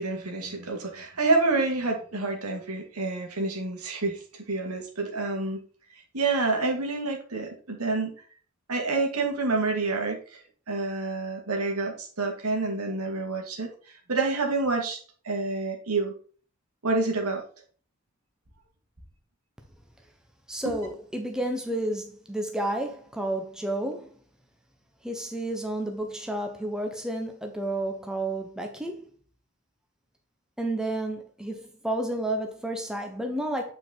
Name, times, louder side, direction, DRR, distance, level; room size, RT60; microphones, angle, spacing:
voice 1, 0.0-4.2 4.5-5.6 6.1-8.1 8.7-10.4 10.7-15.0 15.2-16.1 16.8-17.4, right 3 dB, 90° right, 2.1 m, -28 dB
voice 2, 20.5-24.1 25.0-29.1 30.6-33.7, right 1 dB, 5° right, 0.9 m, -31 dB
8.6 x 4.8 x 4.0 m
head